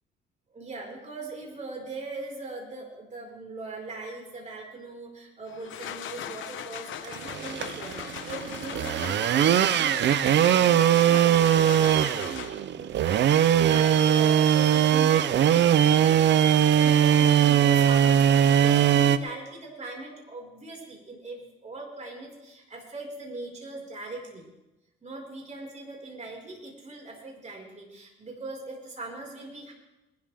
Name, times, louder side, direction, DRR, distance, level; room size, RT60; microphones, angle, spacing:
voice 1, 0.5-24.5 25.0-29.7, right 2 dB, 35° right, -1 dB, 5.0 m, -40 dB
sound 1, 5.5-12.8, left 10 dB, 80° left, 1.0 m, -39 dB
sound 2, 7.1-19.2, right 10 dB, 65° right, 0.6 m, -21 dB
21.0 x 12.5 x 3.5 m, 0.98 s
cardioid pair, 90°, 20 cm